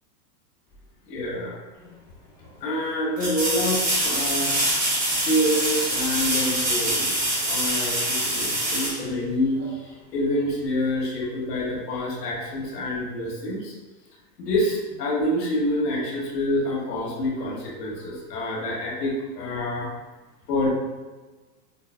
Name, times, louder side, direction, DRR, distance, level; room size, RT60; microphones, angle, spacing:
voice 1, 1.1-1.6 2.6-4.7 5.2-13.7 14.4-19.9 20.5-20.7, left 1 dB, 85° left, -3 dB, 1.5 m, -27 dB
sound 1, 1.8-1.9 3.2-9.8 12.6-12.7, right 1 dB, 15° right, 0.9 m, -25 dB
5.6 x 2.1 x 2.2 m, 1.2 s
supercardioid pair, 135°, 47 cm